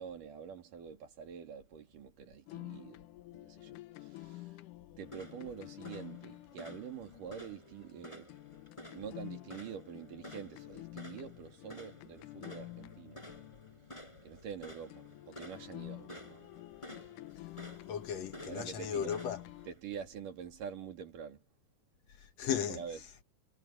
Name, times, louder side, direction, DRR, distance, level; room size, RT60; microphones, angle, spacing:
voice 1, 0.0-3.1 3.3-4.5 5.0-8.3 8.9-13.2 14.2-16.4 18.5-19.1 19.7-21.4 22.7-23.0, right 7 dB, 85° right, 4.1 m, -46 dB
sound 1, 2.5-14.5 14.9-19.7, left 19 dB, 85° left, 2.3 m, -50 dB
sound 2, 5.0-19.8, equal, 10° left, 7.8 m, -53 dB
voice 2, 17.9-19.5 22.1-23.2, left 8 dB, 60° left, 2.3 m, -37 dB
omnidirectional pair, 3.7 m